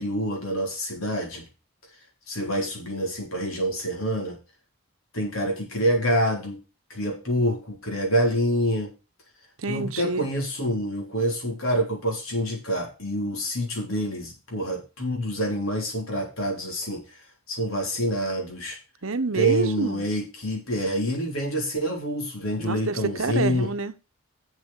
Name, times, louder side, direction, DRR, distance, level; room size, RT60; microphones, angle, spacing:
voice 1, 0.0-1.5 2.3-4.4 5.1-6.6 6.9-8.9 9.7-17.0 17.5-18.8 19.3-23.7, equal, 70° left, 4.4 m, -27 dB
voice 2, 9.6-10.3 19.0-20.1 22.6-24.0, right 3 dB, 65° right, 1.0 m, -28 dB
7.7 x 7.2 x 6.6 m
head